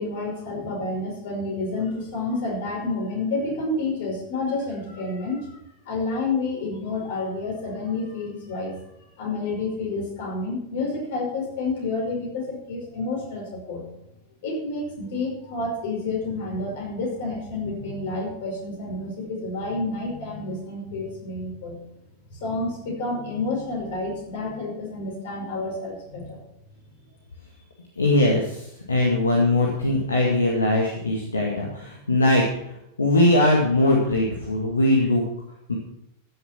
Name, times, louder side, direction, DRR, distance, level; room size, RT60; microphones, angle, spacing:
voice 1, 0.0-5.6 5.8-8.8 9.2-13.8 14.4-21.8 22.3-26.4, left 3 dB, 55° left, -1 dB, 5.3 m, -29 dB
voice 2, 28.0-32.4 33.0-35.2 35.7-35.8, left 1 dB, 75° left, -1 dB, 1.9 m, -21 dB
14.0 x 7.1 x 6.0 m, 0.83 s
figure-of-eight pair, 90°, 0 cm